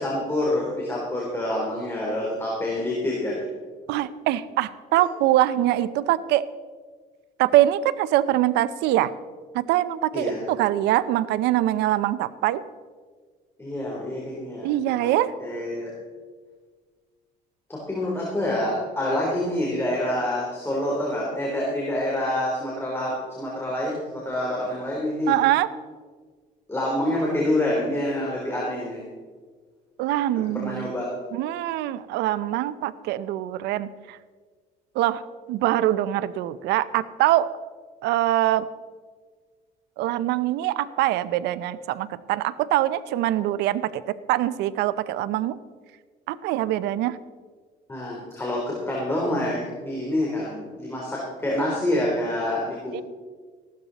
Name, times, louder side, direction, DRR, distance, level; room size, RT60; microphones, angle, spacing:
voice 1, 0.0-3.4 5.0-5.1 10.1-10.4 13.6-15.1 15.4-15.9 17.7-25.4 26.7-29.0 30.5-31.1 47.9-53.0, left 1 dB, 15° left, -4 dB, 3.5 m, -27 dB
voice 2, 3.9-6.4 7.4-9.1 9.5-12.6 14.6-15.3 25.3-25.7 30.0-31.0 31.3-34.2 35.0-35.2 35.5-37.5 38.0-38.7 40.0-45.6 46.3-47.2 52.9-53.0, right 14 dB, 85° right, 16 dB, 0.6 m, -23 dB
15.5 x 12.0 x 4.1 m, 1.5 s
cardioid pair, 110°, 17 cm